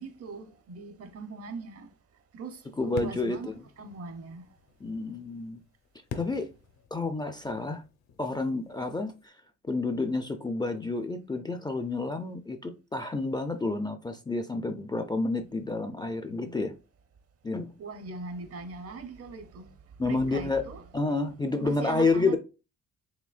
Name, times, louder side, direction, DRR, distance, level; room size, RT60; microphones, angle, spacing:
voice 1, 0.0-1.9 2.3-3.5 3.8-4.5 17.8-19.7 20.0-20.8 21.1-21.2 21.6-22.3, right 3 dB, 50° right, 0.8 m, -40 dB
voice 2, 2.8-3.5 4.8-5.6 6.1-6.5 6.9-7.8 8.2-9.3 9.7-16.7 17.4-17.7 20.0-20.6 20.9-22.4, left 3 dB, 15° left, 0.4 m, -29 dB
sound 1, 2.9-9.3, left 6 dB, 65° left, 0.9 m, -46 dB
5.0 x 3.1 x 2.4 m
cardioid pair, 90°, 30 cm